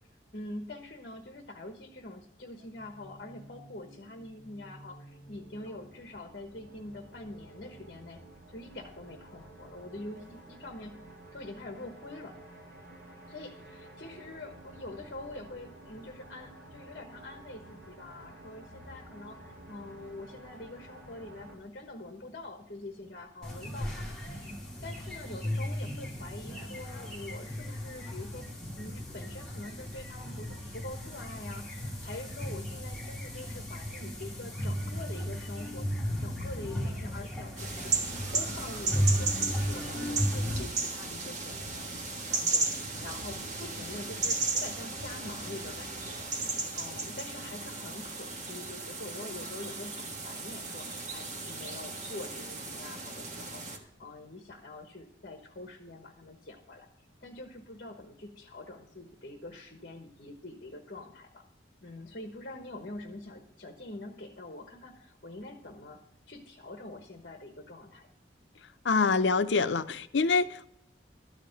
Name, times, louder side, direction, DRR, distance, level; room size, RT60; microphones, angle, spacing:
voice 1, 0.3-8.2 8.5-11.0 11.3-12.3 13.3-24.2 24.8-28.5 28.7-35.9 36.2-42.0 42.3-56.9 57.2-61.4 61.8-66.0 66.3-68.1, left 2 dB, 50° left, 1.2 m, -45 dB
sound 1, 2.6-21.5, right 1 dB, 60° right, 3.2 m, -51 dB
sound 2, 23.4-40.6, equal, 5° left, 2.3 m, -35 dB
sound 3, 37.6-53.8, right 3 dB, 40° right, 1.4 m, -35 dB
voice 2, 68.8-70.7, left 4 dB, 75° left, 0.6 m, -25 dB
13.0 x 5.1 x 8.9 m
head